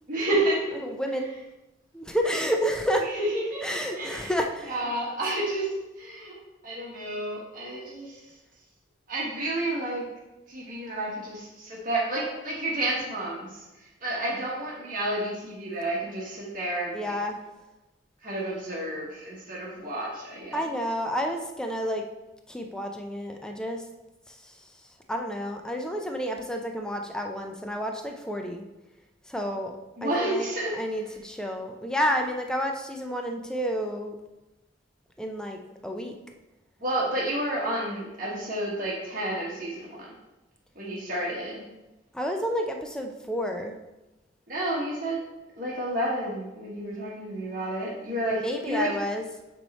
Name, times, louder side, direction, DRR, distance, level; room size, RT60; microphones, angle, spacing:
voice 1, 0.1-0.8 3.0-3.6 3.9-4.3 4.7-6.3 6.6-8.2 9.1-10.0 10.5-13.6 14.0-17.1 18.2-20.7 30.0-30.7 36.8-40.1 40.7-41.6 44.5-45.2 45.6-49.0, right 1 dB, 45° right, -5 dB, 1.4 m, -30 dB
voice 2, 0.8-1.3 1.9-3.1 3.6-4.7 16.9-17.4 20.5-22.0 22.5-23.8 25.1-28.6 29.3-29.8 30.0-30.5 30.7-34.1 35.2-36.1 42.1-43.7 48.4-49.2, equal, 5° left, 3 dB, 0.5 m, -30 dB
8.4 x 3.2 x 4.2 m, 1.0 s
head